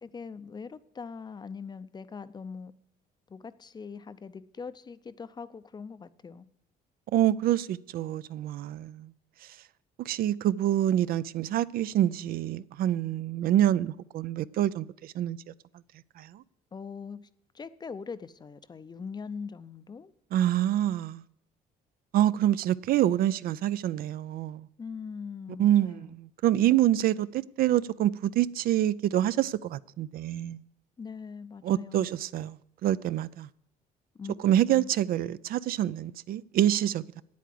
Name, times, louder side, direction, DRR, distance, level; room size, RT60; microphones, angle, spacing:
voice 1, 0.0-2.7 3.3-6.5 16.7-17.2 17.5-20.1 24.8-26.1 31.0-32.1 34.1-34.3 34.7-34.9, left 5 dB, 25° left, 0.5 m, -41 dB
voice 2, 7.1-9.1 9.4-9.6 10.0-15.4 16.2-16.4 20.3-21.2 22.1-24.7 25.6-30.6 31.6-33.5 34.4-37.2, right 12 dB, 60° right, 0.4 m, -26 dB
9.2 x 8.4 x 7.6 m
cardioid pair, 110°, 17 cm